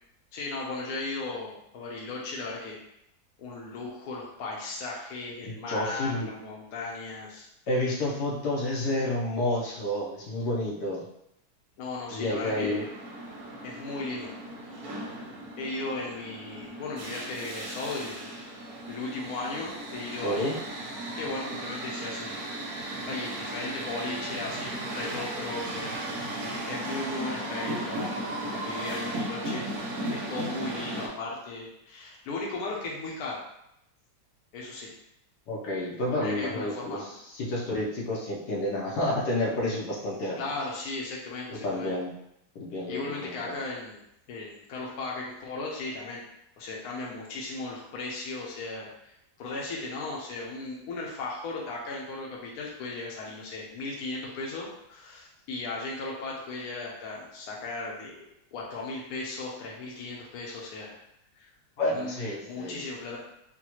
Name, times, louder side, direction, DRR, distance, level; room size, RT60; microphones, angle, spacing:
voice 1, 0.3-2.8 3.4-7.5 11.8-12.9 13.6-14.3 14.6-14.8 15.6-18.4 18.9-20.6 21.1-22.4 23.1-26.0 26.7-29.7 30.1-33.4 34.5-34.9 36.1-37.1 40.4-41.9 42.9-44.0 44.3-46.2 46.6-58.2 58.5-60.9 61.4-61.5 61.9-63.2, left 3 dB, 75° left, -3 dB, 1.2 m, -36 dB
voice 2, 5.4-6.4 7.7-11.0 12.1-12.8 20.2-20.6 35.5-37.0 37.3-40.4 41.6-42.1 42.5-43.6 61.8-62.8, left 1 dB, 90° left, -3 dB, 1.4 m, -30 dB
sound 1, 12.3-31.1, right 1 dB, 70° right, 1.2 m, -36 dB
3.9 x 2.2 x 2.9 m, 0.80 s
omnidirectional pair, 1.7 m